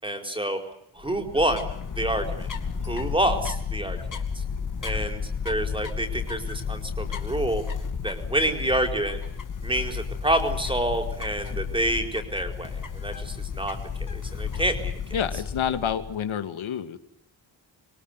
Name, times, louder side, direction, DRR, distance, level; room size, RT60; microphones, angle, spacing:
voice 1, 0.0-0.6 0.9-2.5 2.8-4.2 4.8-7.6 8.0-9.2 9.6-14.9, right 1 dB, 10° right, 6 dB, 4.6 m, -28 dB
sound 1, 1.0-16.2, left 6 dB, 40° left, 2.6 m, -32 dB
voice 2, 15.1-17.0, left 8 dB, 80° left, 9 dB, 2.6 m, -28 dB
26.5 x 23.0 x 8.3 m, 0.77 s
wide cardioid pair, 150°, 47 cm